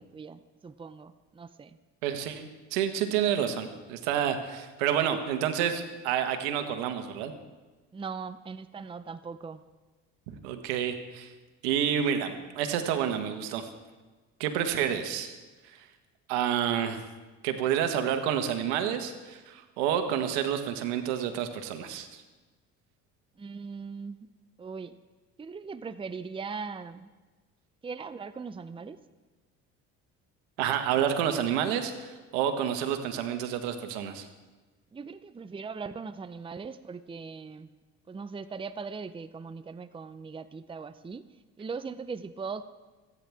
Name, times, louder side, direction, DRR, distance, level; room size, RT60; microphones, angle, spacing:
voice 1, 0.0-1.8 7.9-9.6 23.4-24.3 24.6-25.0 25.4-27.1 27.8-29.0 34.9-37.7 38.1-41.2 41.6-42.6, right 5 dB, 15° right, 12 dB, 0.6 m, -40 dB
voice 2, 2.0-7.3 10.3-11.3 11.6-13.7 14.4-15.3 15.7-15.8 16.3-17.0 17.4-22.2 30.6-34.3, right 9 dB, 85° right, 7 dB, 1.5 m, -29 dB
28.0 x 9.8 x 3.5 m, 1.3 s
supercardioid pair, 75°, 33 cm